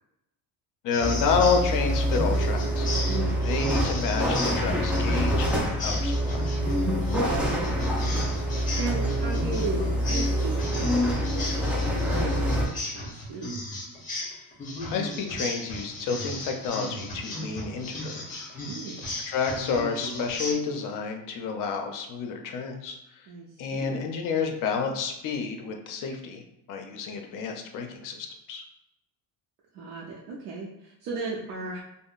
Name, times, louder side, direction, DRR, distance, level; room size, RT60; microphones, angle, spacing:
voice 1, 0.8-2.9 3.4-6.5 14.8-18.4 19.3-23.0 23.6-26.4 26.7-28.6, left 5 dB, 50° left, 3 dB, 0.5 m, -29 dB
sound 1, 0.9-20.5, left 1 dB, 20° left, 0.8 m, -36 dB
sound 2, 1.0-12.6, equal, 5° right, 0.3 m, -26 dB
voice 2, 3.1-3.5 6.8-8.5 8.8-13.6 18.7-19.1 23.3-24.1 29.7-31.8, right 3 dB, 75° right, -4 dB, 0.6 m, -36 dB
3.5 x 2.0 x 2.4 m, 0.86 s
cardioid pair, 155°, 41 cm